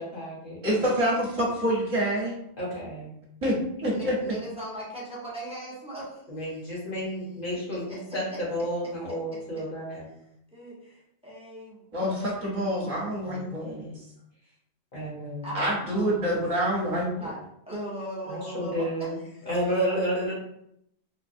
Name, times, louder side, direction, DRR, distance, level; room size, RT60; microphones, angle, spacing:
voice 1, 0.0-0.6 2.6-3.1 6.3-10.0 13.2-14.0 14.9-15.6 18.3-19.2 19.4-20.3, equal, 50° left, -5 dB, 1.3 m, -31 dB
voice 2, 0.6-2.3 3.4-4.2 11.9-13.9 15.5-17.1, equal, 35° right, -5 dB, 1.1 m, -26 dB
voice 3, 3.9-6.2 7.7-8.0 10.5-12.8 15.4-16.4 16.9-17.4 17.7-19.3, right 1 dB, 5° right, -8 dB, 0.9 m, -39 dB
3.6 x 2.3 x 2.6 m, 0.75 s
omnidirectional pair, 1.1 m